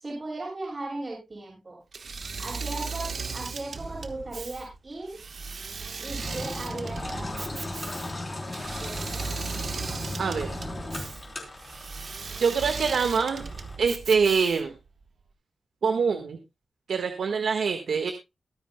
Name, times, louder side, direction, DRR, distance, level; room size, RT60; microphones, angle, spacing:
voice 1, 0.0-1.8 2.4-5.2 6.0-7.5 8.8-9.4, right 2 dB, 30° right, -6 dB, 6.6 m, -37 dB
Engine / Mechanisms, 1.9-14.8, right 5 dB, 55° right, 1.2 m, -37 dB
Engine, 6.2-13.8, left 2 dB, 25° left, 3.6 m, -37 dB
voice 2, 10.2-10.5 12.4-13.4 13.8-14.7 15.8-16.4 16.9-18.1, right 5 dB, 85° right, 7 dB, 1.5 m, -24 dB
22.5 x 9.5 x 2.2 m, 0.25 s
wide cardioid pair, 150°, 0 cm